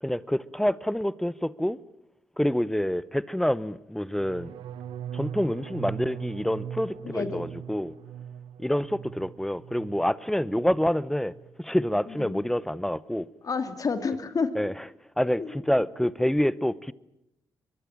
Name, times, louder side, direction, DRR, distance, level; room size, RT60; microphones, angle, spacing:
voice 1, 0.0-1.8 2.4-4.5 5.1-7.9 8.6-11.3 11.6-13.3 14.6-14.7 15.2-16.9, equal, 5° left, 0.8 m, -27 dB
sound 1, 4.1-10.1 10.4-10.9 11.1-11.5, right 9 dB, 85° right, 0.9 m, -40 dB
voice 2, 7.0-7.5 12.1-12.4 13.4-14.5 15.4-15.6, left 5 dB, 45° left, 2.5 m, -30 dB
23.0 x 22.5 x 8.9 m
cardioid pair, 80°, 8 cm